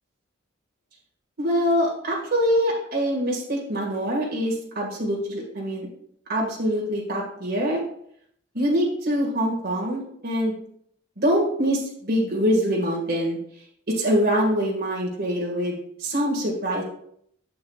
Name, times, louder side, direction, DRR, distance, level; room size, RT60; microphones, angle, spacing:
voice 1, 1.4-5.9 6.3-7.8 8.5-10.6 11.2-13.4 13.9-16.8, equal, 50° right, -3 dB, 1.8 m, -24 dB
11.0 x 7.1 x 2.4 m, 0.68 s
head